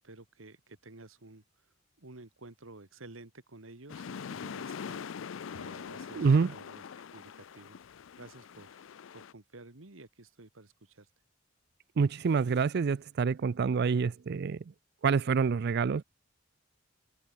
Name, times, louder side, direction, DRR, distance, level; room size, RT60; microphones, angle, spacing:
voice 1, 0.0-5.1 5.5-7.8 8.2-11.1, right 2 dB, 85° right, 2.0 m, -52 dB
sound 1, 3.9-9.3, left 6 dB, 70° left, 0.4 m, -43 dB
voice 2, 6.1-6.5 12.0-14.6 15.0-16.0, right 5 dB, 55° right, 0.4 m, -27 dB
open air
head